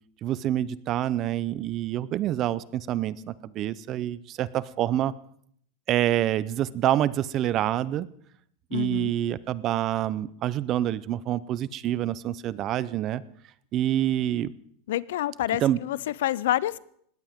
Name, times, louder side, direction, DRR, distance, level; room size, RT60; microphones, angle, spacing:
voice 1, 0.2-5.1 5.9-8.1 8.7-13.2 13.7-14.5 15.6-15.8, right 12 dB, 35° right, 0.6 m, -27 dB
voice 2, 8.7-9.1 14.9-16.8, left 13 dB, 80° left, 0.6 m, -28 dB
20.5 x 17.0 x 3.7 m
supercardioid pair, 150°, 0 cm